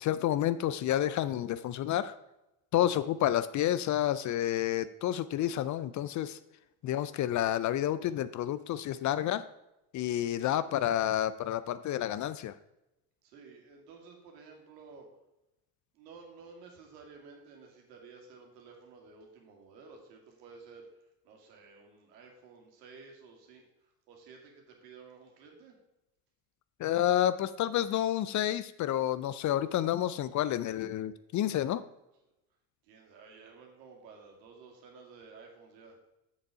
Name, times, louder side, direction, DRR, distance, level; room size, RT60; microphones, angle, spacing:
voice 1, 0.0-2.1 2.7-6.4 6.8-9.4 9.9-12.5 26.8-31.8, left 12 dB, 40° left, 15 dB, 0.5 m, -29 dB
voice 2, 13.2-15.1 15.9-20.9 21.2-25.8 32.1-32.2 32.8-36.0, right 4 dB, 80° right, 1 dB, 2.3 m, -53 dB
7.1 x 6.6 x 4.8 m, 0.91 s
hypercardioid pair, 80°, 48 cm